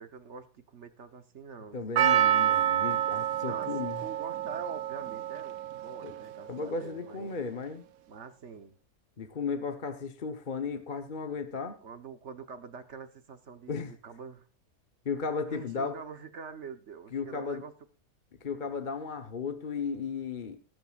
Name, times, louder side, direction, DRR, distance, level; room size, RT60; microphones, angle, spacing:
voice 1, 0.0-1.8 3.4-7.3 8.1-8.8 11.8-14.5 15.5-17.7, right 5 dB, 50° right, 10 dB, 1.3 m, -45 dB
voice 2, 1.7-4.0 6.0-6.1 6.5-7.8 9.2-11.8 13.7-13.9 15.0-16.0 17.1-17.6 18.4-20.6, left 5 dB, 35° left, 7 dB, 1.1 m, -35 dB
Percussion, 2.0-6.3 6.6-6.7, right 11 dB, 70° right, 1.1 m, -28 dB
19.5 x 9.0 x 2.5 m, 0.38 s
omnidirectional pair, 1.6 m